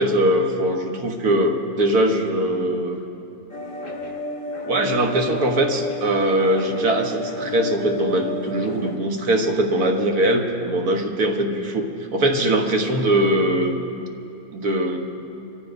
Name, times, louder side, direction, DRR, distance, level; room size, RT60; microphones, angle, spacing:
voice 1, 0.0-3.0 4.7-11.9 12.1-13.8 14.5-15.0, right 1 dB, 65° right, 3 dB, 1.6 m, -21 dB
sound 1, 3.5-9.0, left 1 dB, 65° left, 2.2 m, -31 dB
26.0 x 14.5 x 2.6 m, 2.7 s
omnidirectional pair, 1.7 m